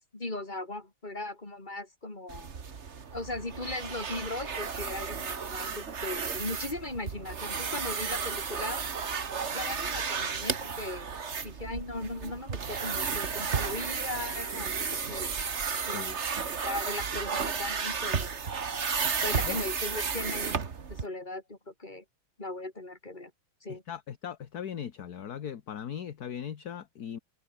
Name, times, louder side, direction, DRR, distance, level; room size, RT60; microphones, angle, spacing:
voice 1, 0.1-2.5 3.1-8.8 9.5-11.2 11.4-15.5 15.8-16.2 16.6-18.4 19.2-20.6 20.9-22.0 22.4-23.3 23.6-23.8, left 2 dB, 20° left, 4.0 m, -38 dB
sound 1, 2.3-21.1, right 6 dB, 35° right, 1.6 m, -33 dB
voice 2, 23.7-27.2, left 8 dB, 55° left, 1.6 m, -39 dB
omnidirectional pair, 2.2 m